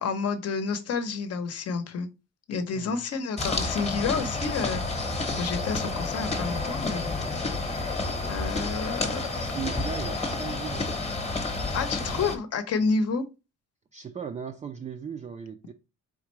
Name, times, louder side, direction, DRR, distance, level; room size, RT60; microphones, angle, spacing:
voice 1, 0.0-2.1 2.5-7.5 8.3-9.2 11.7-13.2, left 4 dB, 55° left, 0.8 m, -30 dB
voice 2, 2.6-3.0 9.3-11.0 13.9-15.7, right 7 dB, 25° right, 0.3 m, -37 dB
sound 1, 3.4-12.4, left 3 dB, 20° left, 0.9 m, -30 dB
4.4 x 3.6 x 3.0 m
cardioid pair, 125°, 30 cm